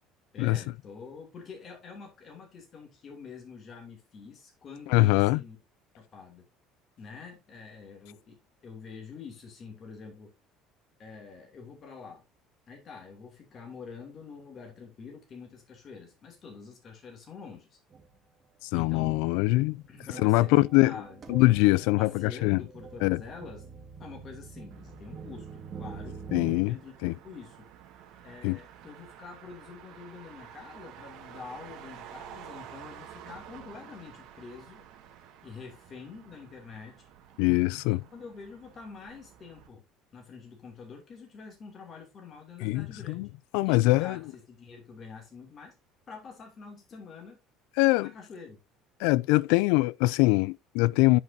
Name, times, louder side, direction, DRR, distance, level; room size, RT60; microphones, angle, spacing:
voice 1, 0.3-5.6 6.0-6.5 7.0-10.3 11.0-12.2 12.7-17.8 18.7-19.2 19.9-21.2 22.0-23.7 24.0-26.2 26.6-26.9 27.2-27.7 28.2-34.9 35.4-36.9 37.9-39.8 40.1-43.3 43.6-45.7 46.1-47.4 48.0-48.6, left 5 dB, 35° left, 2.8 m, -46 dB
voice 2, 4.9-5.4 18.7-19.8 20.2-21.0 21.3-22.6 23.0-23.2 26.3-26.8 27.0-27.1 28.4-28.6 37.4-38.0 42.6-43.3 43.5-44.2 47.8-48.1 49.0-51.2, left 21 dB, 85° left, 0.3 m, -23 dB
sound 1, 17.9-18.2 18.8-19.0 19.2-26.6, right 5 dB, 30° right, 1.7 m, -45 dB
Motor vehicle (road), 24.7-39.7, right 9 dB, 65° right, 1.7 m, -50 dB
10.5 x 5.4 x 2.7 m
cardioid pair, 150°, 0 cm